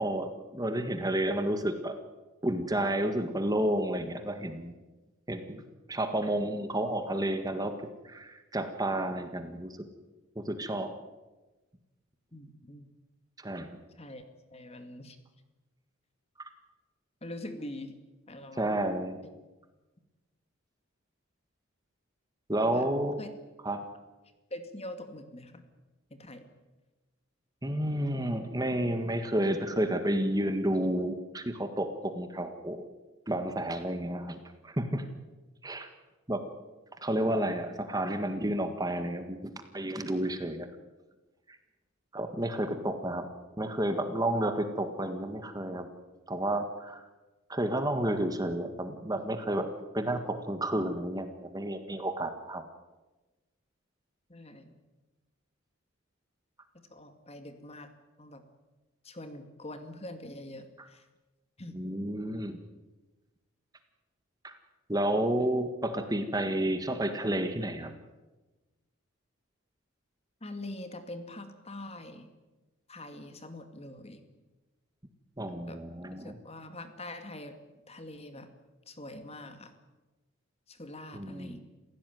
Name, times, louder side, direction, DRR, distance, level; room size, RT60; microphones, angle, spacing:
voice 1, 0.0-2.0 2.4-4.7 5.3-5.6 5.9-7.7 8.0-9.8 10.3-10.9 13.4-13.8 18.5-19.2 22.5-23.2 23.6-23.8 27.6-32.8 33.3-35.1 35.6-35.9 36.3-36.4 37.0-40.7 41.5-41.6 42.1-43.3 43.6-45.9 46.3-47.0 47.5-49.7 49.9-52.6 61.7-62.6 64.4-64.5 64.9-67.9 75.4-76.4 81.1-81.6, right 1 dB, 20° right, 7 dB, 1.7 m, -31 dB
voice 2, 12.3-12.9 14.0-14.2 14.5-15.2 17.2-17.9 18.3-18.6 22.5-22.9 23.2-23.3 24.5-25.6 26.1-26.5 42.6-42.8 54.3-54.7 56.9-57.9 58.2-58.4 59.0-61.0 61.6-61.8 70.4-72.3 72.9-74.2 75.7-75.8 76.1-77.5 77.9-78.5 78.9-79.7 80.7-81.6, left 1 dB, 30° left, 8 dB, 2.3 m, -44 dB
28.5 x 16.0 x 9.4 m, 1.2 s
head